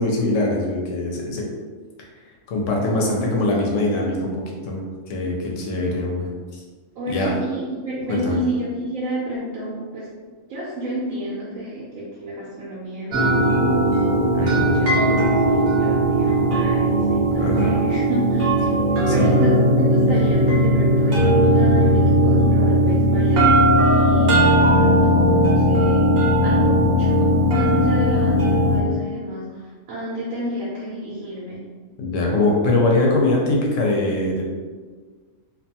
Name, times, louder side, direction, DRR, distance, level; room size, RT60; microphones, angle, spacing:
voice 1, 0.0-1.5 2.5-6.3 7.1-7.3 8.1-8.4 14.3-14.7 17.4-17.8 19.1-19.3 26.8-26.9 32.0-34.4, left 2 dB, 75° left, -1 dB, 0.9 m, -22 dB
voice 2, 2.9-3.7 7.0-10.1 10.5-13.7 14.4-18.5 19.1-26.2 26.4-29.6 29.9-31.6, equal, 80° right, -6 dB, 1.0 m, -30 dB
sound 1, 13.1-28.8, equal, 55° right, 0.8 m, -17 dB
2.5 x 2.3 x 2.7 m, 1.5 s
omnidirectional pair, 1.4 m